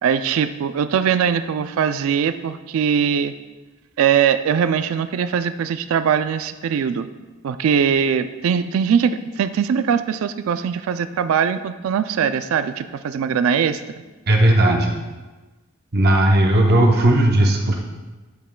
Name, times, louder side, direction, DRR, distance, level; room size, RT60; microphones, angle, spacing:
voice 1, 0.0-3.3 4.0-7.1 7.4-13.8, right 7 dB, 70° right, 11 dB, 0.3 m, -21 dB
voice 2, 14.3-14.9 15.9-17.8, right 1 dB, 45° right, 1 dB, 0.7 m, -16 dB
12.5 x 5.4 x 2.2 m, 1.2 s
head